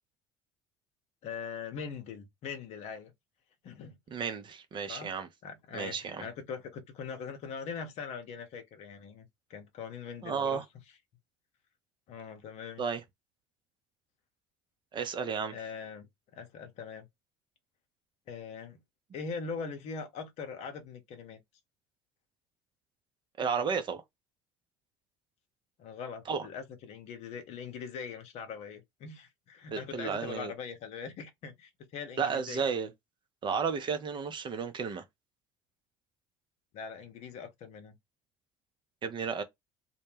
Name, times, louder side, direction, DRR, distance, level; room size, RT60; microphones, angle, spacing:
voice 1, 1.2-3.1 3.6-4.0 4.9-5.2 5.4-10.6 12.1-12.8 15.5-17.1 18.3-18.8 19.1-21.4 25.8-32.7 36.7-37.9, left 6 dB, 55° left, 0.7 m, -42 dB
voice 2, 4.1-5.3 5.7-6.3 10.2-10.6 12.8-13.0 14.9-15.6 23.4-24.0 26.3-26.5 29.7-30.5 32.2-32.9 33.4-35.0 39.0-39.4, right 6 dB, 35° right, 0.5 m, -33 dB
2.1 x 2.1 x 3.2 m
hypercardioid pair, 65°, 13 cm